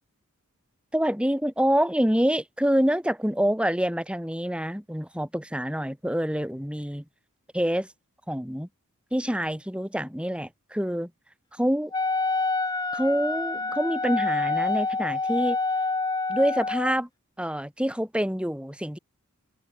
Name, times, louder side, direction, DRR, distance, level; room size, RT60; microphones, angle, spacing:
voice 1, 0.9-7.0 7.5-7.9 8.3-8.7 9.1-11.1 11.6-11.9 12.9-15.6 16.3-17.1 17.4-19.0, equal, 5° right, 7.0 m, -26 dB
Wind instrument woodwind instrument, 11.9-17.0, left 3 dB, 20° left, 2.9 m, -27 dB
head